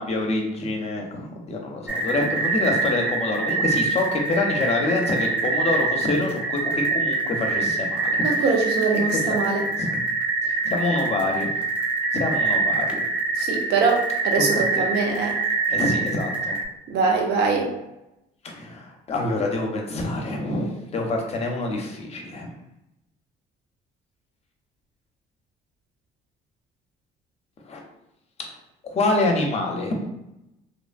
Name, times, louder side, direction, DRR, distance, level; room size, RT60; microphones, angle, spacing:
voice 1, 0.0-8.2 9.3-9.4 9.8-10.0 10.4-11.5 12.1-13.0 14.5-14.9 15.7-16.6 18.4-22.5 27.6-27.8 28.4-28.5 28.8-29.9, left 2 dB, 40° left, 1 dB, 0.6 m, -26 dB
sound 1, 1.9-16.6, right 3 dB, 5° right, 0.4 m, -25 dB
voice 2, 8.2-9.7 13.3-15.4 16.9-17.7, right 4 dB, 75° right, 0 dB, 0.7 m, -23 dB
2.9 x 2.1 x 2.5 m, 0.88 s
cardioid pair, 110°, 17 cm